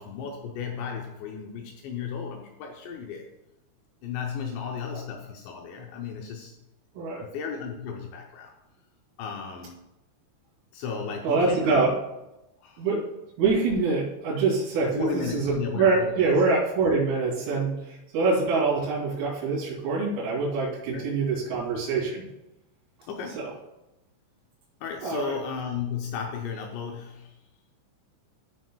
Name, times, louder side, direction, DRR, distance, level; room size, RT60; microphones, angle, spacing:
voice 1, 0.0-3.3 4.0-6.6 7.2-8.5 9.2-9.8 10.7-11.9 12.6-12.9 14.9-16.3 20.9-21.1 23.1-23.5 24.8-27.4, left 6 dB, 85° left, 2 dB, 2.6 m, -35 dB
voice 2, 11.2-11.9 12.8-13.0 13.4-22.2 23.4-23.5 25.0-25.4, right 4 dB, 80° right, -7 dB, 5.4 m, -25 dB
16.0 x 6.2 x 2.3 m, 0.93 s
omnidirectional pair, 5.9 m